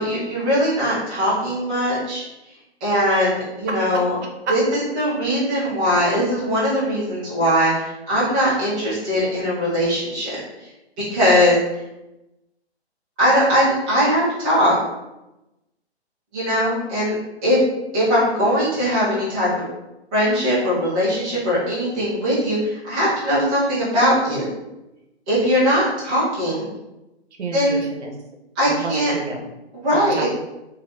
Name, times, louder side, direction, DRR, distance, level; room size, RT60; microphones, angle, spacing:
voice 1, 0.0-2.2 2.8-4.2 4.5-10.4 11.0-11.6 13.2-14.8 16.3-17.1 17.4-17.6 17.9-19.6 20.1-24.4 25.3-26.7 27.5-27.8 28.6-29.1 29.7-30.3, equal, 10° right, -10 dB, 0.4 m, -20 dB
voice 2, 27.4-28.1 28.7-29.5 29.9-30.3, right 3 dB, 80° right, 1 dB, 0.8 m, -31 dB
3.2 x 2.7 x 2.6 m, 0.96 s
hypercardioid pair, 150°, 33 cm